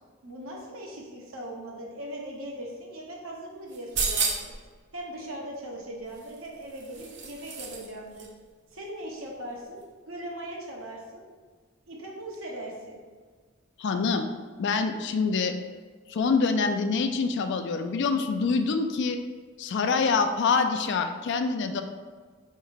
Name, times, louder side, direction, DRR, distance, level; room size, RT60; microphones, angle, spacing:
voice 1, 0.2-4.5 4.9-8.3 8.7-11.2 11.9-13.0, right 1 dB, 75° right, -2 dB, 1.1 m, -39 dB
sound 1, 3.7-4.6 6.1-7.9 8.2-8.3, right 4 dB, 60° right, 0.7 m, -31 dB
voice 2, 13.8-14.3 14.6-15.6 16.1-19.2 19.6-21.8, left 4 dB, 60° left, 7 dB, 0.4 m, -25 dB
4.4 x 3.1 x 3.9 m, 1.5 s
head